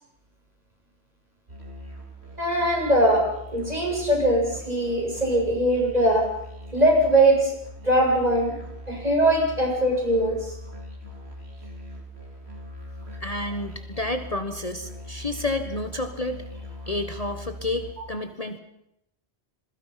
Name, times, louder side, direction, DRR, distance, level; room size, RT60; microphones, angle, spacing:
Musical instrument, 1.5-17.9, equal, 75° right, 4.8 m, -41 dB
voice 1, 2.4-6.2 6.7-7.5 7.8-8.5 8.9-10.5, right 1 dB, 35° right, 0 dB, 8.0 m, -21 dB
voice 2, 13.2-16.4 16.9-18.6, left 2 dB, 35° left, 8 dB, 1.5 m, -30 dB
27.5 x 22.0 x 5.8 m, 0.79 s
omnidirectional pair, 1.1 m